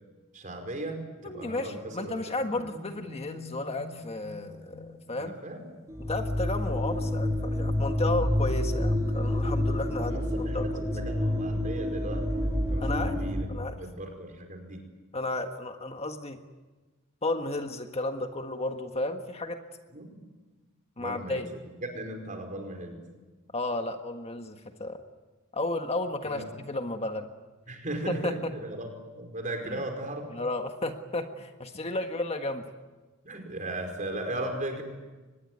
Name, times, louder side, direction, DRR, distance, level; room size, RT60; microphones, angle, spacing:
voice 1, 0.3-2.1 2.5-2.6 5.2-5.6 6.6-7.1 10.0-10.7 10.9-13.5 13.8-14.8 19.9-20.2 21.0-23.0 26.3-26.5 27.7-30.3 33.2-34.8, right 1 dB, 40° right, 5 dB, 5.1 m, -37 dB
voice 2, 1.2-5.3 6.0-10.9 12.8-13.8 15.1-16.4 17.2-19.6 21.0-21.5 23.5-25.0 25.5-27.3 28.1-28.5 29.7-29.8 30.3-32.6, left 2 dB, 30° left, 5 dB, 1.6 m, -33 dB
sound 1, 2.6-5.4 5.7-13.4, left 1 dB, 15° right, 2.9 m, -29 dB
24.0 x 20.5 x 9.5 m, 1.2 s
head